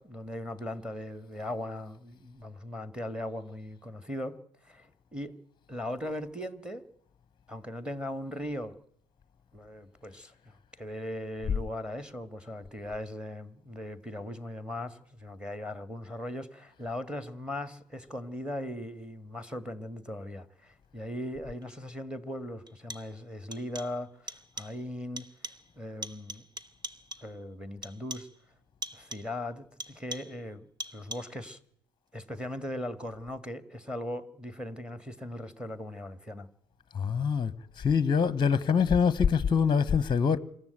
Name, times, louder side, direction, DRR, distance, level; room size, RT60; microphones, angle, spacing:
voice 1, 0.0-4.4 4.6-5.4 5.7-6.9 7.5-8.8 9.5-25.3 25.8-26.4 27.2-28.3 28.9-30.7 30.9-31.6 32.1-36.5, left 1 dB, 5° right, 1.8 m, -39 dB
sound 1, 21.6-21.7 22.7-23.2 23.5-24.0 24.3-24.8 25.2-25.7 26.0-27.4 27.8-28.4 28.8-29.4 29.8-30.4 30.8-31.4, right 1 dB, 20° right, 1.5 m, -42 dB
voice 2, 36.9-37.5 37.8-40.4, left 6 dB, 20° left, 1.0 m, -24 dB
26.0 x 13.5 x 9.2 m
figure-of-eight pair, 55°, 21 cm